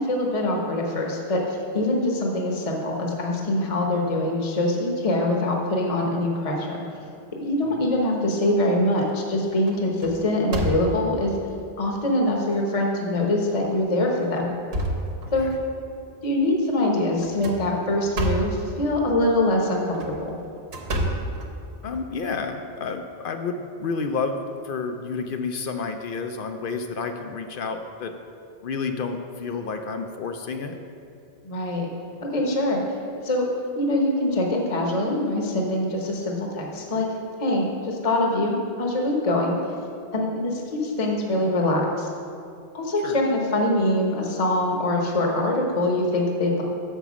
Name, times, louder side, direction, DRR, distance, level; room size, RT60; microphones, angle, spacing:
voice 1, 0.0-6.8 7.4-11.3 11.8-14.5 15.3-15.5 16.2-20.4 31.4-31.9 32.2-32.8 33.2-33.5 33.7-37.1 37.4-39.6 40.1-42.1 42.7-46.6, left 1 dB, 35° left, 0 dB, 1.0 m, -24 dB
sound 1, 8.0-8.6 9.1-9.3 9.7-11.2 11.9-12.0 12.5-12.6 13.5-13.8 14.2-15.7 17.2-18.7 19.8-22.0, right 1 dB, 75° right, 1.1 m, -30 dB
voice 2, 21.8-24.4 24.6-28.1 28.6-30.8 43.0-43.2, left 4 dB, 65° left, 6 dB, 0.7 m, -30 dB
6.8 x 5.6 x 6.0 m, 2.5 s
omnidirectional pair, 1.1 m